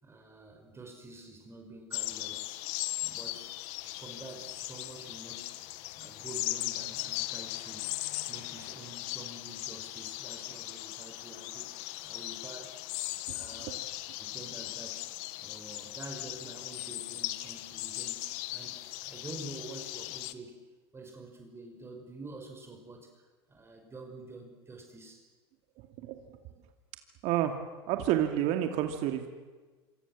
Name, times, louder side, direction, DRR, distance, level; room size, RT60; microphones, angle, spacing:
voice 1, 0.0-2.6 3.0-3.5 3.9-5.6 6.0-7.9 8.3-12.8 13.3-13.8 14.2-20.6 20.9-25.3, right 2 dB, 20° right, 3 dB, 5.7 m, -48 dB
sound 1, 1.9-20.3, left 18 dB, 60° left, 1.5 m, -38 dB
voice 2, 27.2-29.3, right 11 dB, 55° right, 6 dB, 2.4 m, -30 dB
27.0 x 26.5 x 7.5 m, 1.4 s
hypercardioid pair, 90°, 13 cm